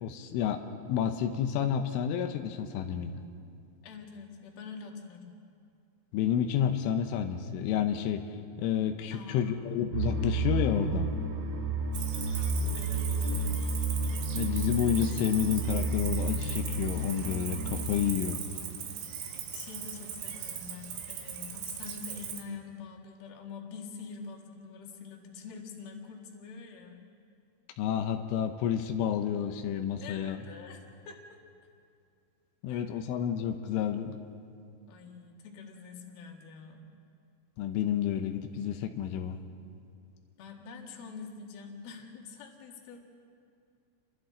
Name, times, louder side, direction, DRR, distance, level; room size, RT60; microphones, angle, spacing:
voice 1, 0.0-0.6 0.9-3.1 6.1-8.2 8.6-11.1 14.4-18.4 27.8-30.4 32.6-34.1 37.6-39.4, left 9 dB, 90° left, 6 dB, 3.4 m, -30 dB
voice 2, 3.8-5.4 9.1-9.9 12.7-13.8 19.5-27.0 30.0-31.4 32.7-32.9 34.9-36.9 40.4-43.0, left 5 dB, 60° left, 1 dB, 3.5 m, -46 dB
sound 1, 9.9-18.1, right 2 dB, 65° right, 1.6 m, -31 dB
Cricket, 11.9-22.4, right 8 dB, 80° right, 3.9 m, -39 dB
30.0 x 24.0 x 3.9 m, 2.3 s
omnidirectional pair, 5.4 m